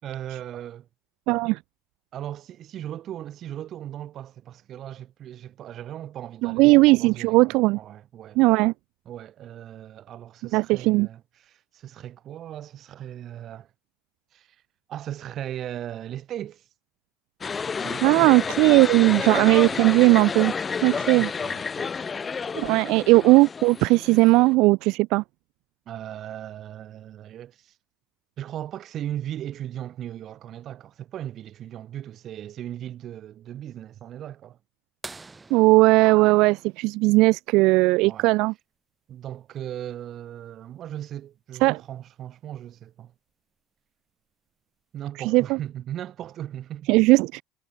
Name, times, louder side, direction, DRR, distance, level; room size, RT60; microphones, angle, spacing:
voice 1, 0.0-0.9 2.1-8.4 9.1-13.7 14.3-14.6 14.9-16.7 17.7-18.3 19.1-19.6 20.8-21.9 22.6-22.9 24.1-24.3 25.9-27.7 28.4-34.6 38.0-38.3 39.1-43.1 44.9-46.9, right 11 dB, 50° right, 4.2 m, -38 dB
voice 2, 1.3-1.6 6.4-7.8 8.4-8.7 10.5-11.1 18.0-20.5 20.8-21.3 22.5-25.2 35.5-38.5 41.6-41.8 45.2-45.6 46.9-47.4, right 22 dB, 70° right, 0.6 m, -18 dB
sound 1, 17.4-24.5, left 5 dB, 30° left, 2.0 m, -30 dB
sound 2, 35.0-37.5 39.4-39.5 41.7-41.8 43.5-43.8 44.6-44.7, right 3 dB, 20° right, 2.7 m, -45 dB
hypercardioid pair, 80°, 0 cm